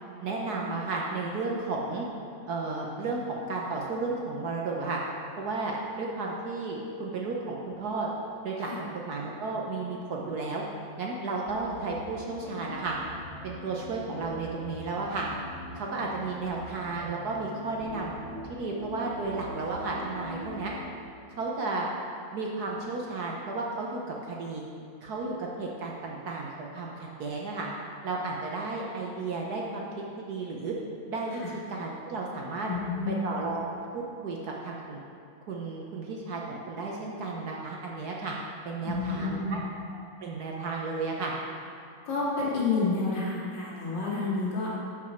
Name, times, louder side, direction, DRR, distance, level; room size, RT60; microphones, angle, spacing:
voice 1, 0.2-2.1 2.5-5.0 5.4-8.1 8.4-10.6 11.0-12.9 13.4-15.3 15.7-18.1 18.5-20.7 21.4-21.9 22.3-24.6 25.0-27.7 28.0-29.9 30.2-30.8 31.1-31.4 31.7-32.7 33.1-33.6 33.9-35.0 35.5-38.3 38.6-39.6 39.9-41.3, right 3 dB, 60° right, -2 dB, 1.2 m, -33 dB
sound 1, 11.4-20.8, equal, 30° right, 2.2 m, -43 dB
voice 2, 32.6-33.2 38.8-39.6 42.0-44.7, left 3 dB, 60° left, -7 dB, 3.0 m, -30 dB
12.0 x 6.1 x 4.4 m, 2.4 s
omnidirectional pair, 2.2 m